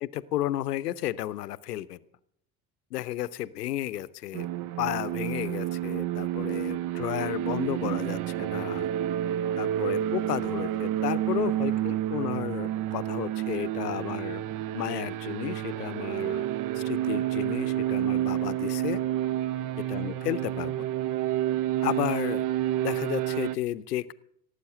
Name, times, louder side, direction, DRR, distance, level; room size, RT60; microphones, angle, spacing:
voice 1, 0.1-2.0 2.9-4.5 4.8-8.9 9.6-14.4 14.7-16.5 16.7-19.0 19.9-20.7 21.8-22.4 22.8-24.1, left 14 dB, 75° left, 18 dB, 0.7 m, -33 dB
sound 1, 4.3-23.6, right 12 dB, 45° right, 0.7 m, -29 dB
17.5 x 8.2 x 6.5 m, 0.71 s
figure-of-eight pair, 60°, 47 cm